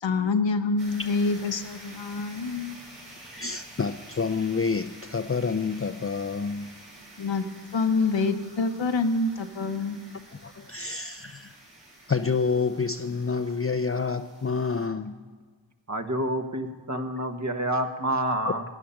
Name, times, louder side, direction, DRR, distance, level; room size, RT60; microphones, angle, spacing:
voice 1, 0.0-2.8 7.2-7.5 7.7-10.0, left 3 dB, 75° left, 7 dB, 1.0 m, -26 dB
sound 1, 0.8-14.9, right 1 dB, 85° right, 5.5 m, -49 dB
voice 2, 3.3-6.7 9.8-9.9 10.3-11.6 12.1-15.2 16.9-17.0 18.4-18.5, left 5 dB, 30° left, 7 dB, 0.5 m, -28 dB
voice 3, 15.9-18.6, right 1 dB, 40° right, 6 dB, 1.4 m, -28 dB
16.0 x 10.0 x 5.8 m, 1.5 s
cardioid pair, 40°, 45 cm